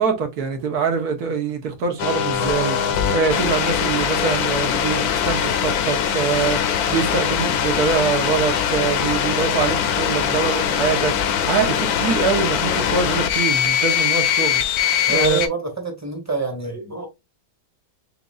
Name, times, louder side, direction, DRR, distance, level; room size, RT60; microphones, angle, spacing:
voice 1, 0.0-15.4, right 5 dB, 70° right, 1.5 m, -24 dB
sound 1, 2.0-15.5, left 8 dB, 75° left, 1.1 m, -21 dB
voice 2, 15.1-17.1, right 3 dB, 10° right, 1.1 m, -26 dB
6.5 x 2.6 x 2.4 m
omnidirectional pair, 1.7 m